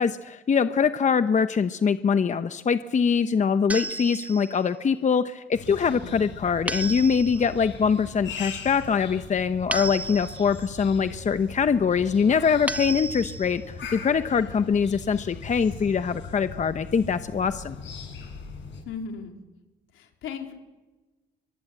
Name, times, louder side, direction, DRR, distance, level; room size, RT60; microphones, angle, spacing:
voice 1, 0.0-17.8, left 6 dB, 40° left, 10 dB, 0.9 m, -23 dB
sound 1, 3.7-4.6 6.7-7.5 9.7-10.6 12.7-13.6, right 2 dB, 5° right, 0.8 m, -33 dB
sound 2, 5.5-18.8, left 5 dB, 65° left, 7.7 m, -40 dB
voice 2, 5.8-6.2 18.9-19.3 19.9-20.5, left 6 dB, 85° left, 3 dB, 3.8 m, -37 dB
23.0 x 23.0 x 8.0 m, 1.2 s
cardioid pair, 90°, 20 cm